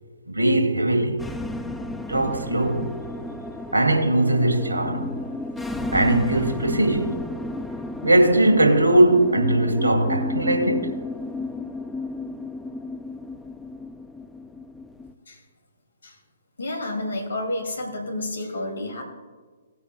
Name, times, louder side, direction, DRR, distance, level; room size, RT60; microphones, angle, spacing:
voice 1, 0.3-1.2 2.1-3.0 3.7-5.2 5.9-7.2 8.0-10.9, right 1 dB, 80° right, 1.9 m, -20 dB
sound 1, 1.2-15.1, left 2 dB, 5° left, 0.5 m, -32 dB
voice 2, 16.6-19.0, left 1 dB, 70° left, 2.7 m, -30 dB
18.5 x 9.3 x 2.3 m
figure-of-eight pair, 125°, 0 cm